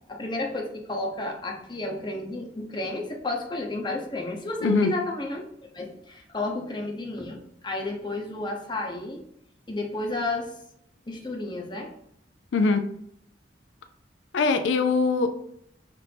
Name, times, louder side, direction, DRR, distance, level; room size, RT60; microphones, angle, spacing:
voice 1, 0.1-5.4 5.7-9.2 9.7-10.5 11.1-11.9, left 2 dB, 25° left, 1 dB, 0.7 m, -31 dB
voice 2, 12.5-12.9 14.3-15.3, left 4 dB, 80° left, 8 dB, 0.4 m, -22 dB
5.8 x 2.6 x 3.3 m, 0.72 s
head